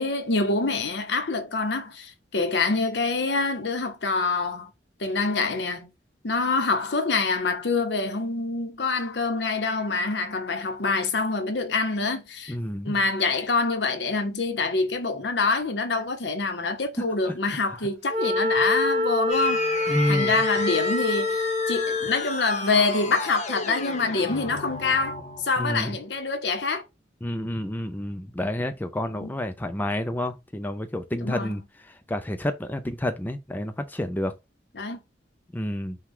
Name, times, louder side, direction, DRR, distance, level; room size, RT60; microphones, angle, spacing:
voice 1, 0.0-4.7 5.0-5.9 6.2-12.6 12.8-19.6 19.9-26.8 29.2-29.3 31.2-31.5 34.8-35.0, left 3 dB, 75° left, 1.0 m, -26 dB
voice 2, 12.5-13.0 17.2-17.3 19.9-20.4 25.6-26.0 27.2-34.3 35.5-36.0, left 1 dB, 10° left, 0.4 m, -29 dB
Wind instrument woodwind instrument, 18.1-22.3, left 2 dB, 40° right, 1.1 m, -26 dB
sound 1, 19.3-25.8, left 3 dB, 40° left, 0.9 m, -33 dB
5.7 x 2.3 x 3.5 m
head